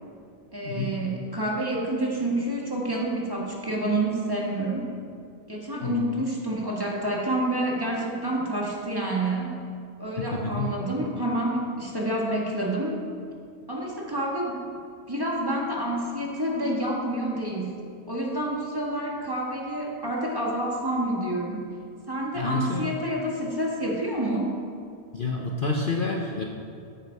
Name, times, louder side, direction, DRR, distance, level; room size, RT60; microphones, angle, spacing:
voice 1, 0.5-4.9 5.5-9.6 10.0-13.0 13.7-14.7 15.1-17.7 18.1-21.7 22.1-24.6, right 1 dB, 15° right, -3 dB, 1.9 m, -28 dB
voice 2, 10.2-10.7 22.4-22.9 25.1-26.4, left 3 dB, 45° left, 0 dB, 1.0 m, -28 dB
14.0 x 10.0 x 4.7 m, 2.4 s
omnidirectional pair, 1.3 m